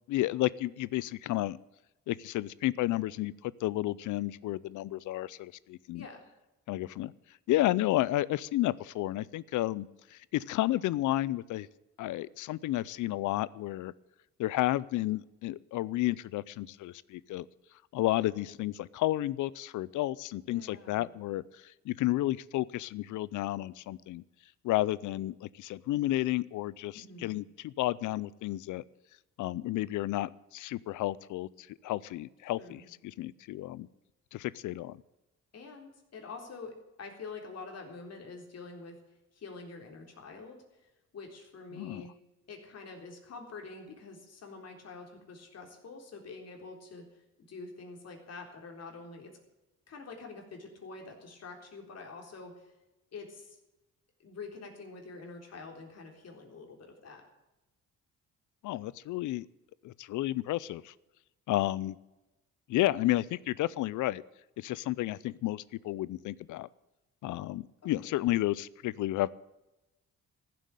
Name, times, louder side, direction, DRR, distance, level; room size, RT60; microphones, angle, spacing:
voice 1, 0.1-1.6 2.1-6.1 6.7-7.1 7.5-11.7 12.0-13.9 14.4-17.5 17.9-24.2 24.6-28.8 29.4-33.9 34.3-35.0 41.7-42.0 58.6-59.5 59.8-60.9 61.5-62.0 62.7-64.2 64.6-66.7 67.2-69.3, left 16 dB, 80° left, 21 dB, 0.6 m, -32 dB
voice 2, 20.4-21.1 26.9-27.3 32.6-32.9 35.5-36.7 37.0-39.0 39.3-42.1 42.5-47.0 47.5-49.3 49.9-52.7 53.1-53.6 54.2-57.2 68.0-68.3, left 4 dB, 55° left, 2 dB, 3.8 m, -46 dB
15.0 x 7.8 x 9.1 m, 0.98 s
cardioid pair, 90°, 30 cm